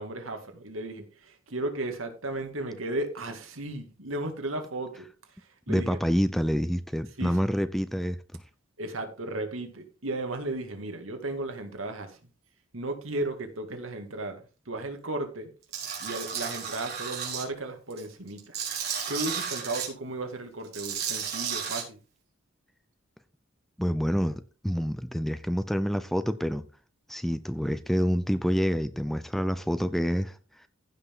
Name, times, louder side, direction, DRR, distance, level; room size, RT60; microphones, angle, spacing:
voice 1, 0.0-5.1 5.7-5.9 7.2-7.6 8.8-12.2 12.7-15.5 16.0-18.6 19.1-22.0, right 2 dB, 85° right, 2.1 m, -35 dB
voice 2, 5.7-8.2 23.8-26.6 27.1-30.4, equal, ahead, 0.5 m, -27 dB
Tools, 15.7-17.4 17.9-19.9 20.6-21.8, right 7 dB, 50° right, 4.0 m, -33 dB
15.5 x 5.8 x 3.8 m
head